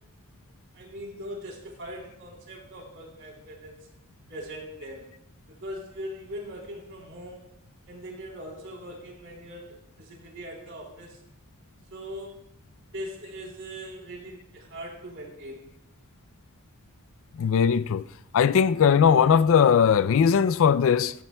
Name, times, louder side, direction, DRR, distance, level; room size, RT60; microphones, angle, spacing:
voice 1, 0.7-3.9 4.3-5.1 5.5-7.4 7.9-11.2 11.9-12.4 12.9-15.6, equal, 60° right, 3.5 m, -40 dB
voice 2, 17.4-18.1 18.3-21.1, left 7 dB, 65° left, 0.4 m, -19 dB
16.0 x 14.0 x 2.2 m
head